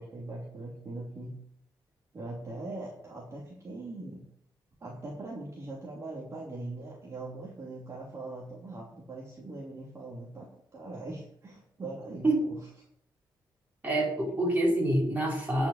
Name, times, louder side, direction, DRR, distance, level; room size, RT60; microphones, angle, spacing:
voice 1, 0.0-1.3 2.1-4.2 4.8-12.6, right 2 dB, 40° right, -4 dB, 3.0 m, -41 dB
voice 2, 13.8-15.7, right 1 dB, 20° right, -3 dB, 5.2 m, -26 dB
10.5 x 6.0 x 8.8 m, 0.68 s
wide cardioid pair, 130°, 8 cm